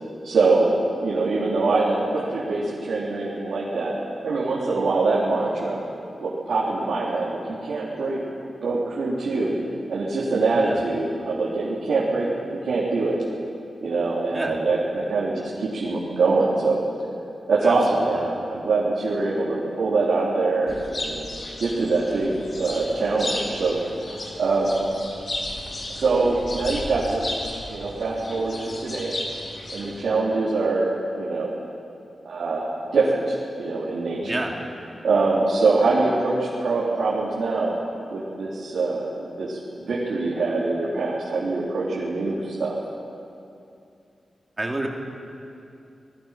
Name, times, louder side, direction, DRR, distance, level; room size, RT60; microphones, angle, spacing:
voice 1, 0.2-0.7 1.0-3.9 4.2-5.8 6.2-8.2 8.6-9.6 9.9-13.2 13.8-16.8 17.5-21.3 21.6-24.8 25.9-27.4 27.7-29.2 29.7-31.5 32.3-34.4 35.0-37.8 38.1-42.8, right 3 dB, 80° right, -6 dB, 3.5 m, -24 dB
voice 2, 17.6-18.2 34.2-34.5 44.6-44.9, right 2 dB, 20° right, 0 dB, 2.5 m, -29 dB
sound 1, 20.7-30.1, left 1 dB, 35° left, 3.0 m, -34 dB
27.0 x 20.0 x 5.9 m, 2.6 s
wide cardioid pair, 155°, 0 cm